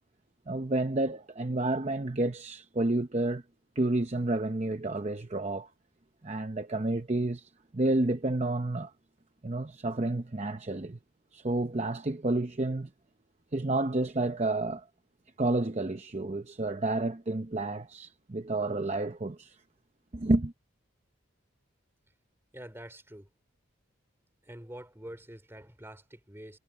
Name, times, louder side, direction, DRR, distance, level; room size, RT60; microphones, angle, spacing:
voice 1, 0.5-3.4 3.8-5.7 6.2-8.9 9.4-11.0 11.3-12.9 13.5-14.9 15.4-19.6 20.1-20.5, right 2 dB, 30° right, 0.7 m, -30 dB
voice 2, 22.5-23.3 24.4-26.6, right 1 dB, 10° right, 2.8 m, -46 dB
head